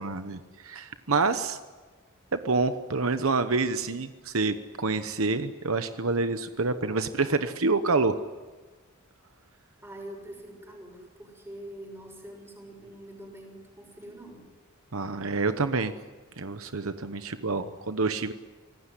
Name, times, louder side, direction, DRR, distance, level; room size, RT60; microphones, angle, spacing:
voice 1, 0.0-1.6 2.3-8.2 14.9-15.9 16.4-18.3, right 3 dB, 70° right, 10 dB, 1.0 m, -27 dB
voice 2, 9.8-14.5, right 1 dB, 10° right, 2 dB, 6.5 m, -44 dB
25.5 x 18.5 x 10.0 m, 1.3 s
head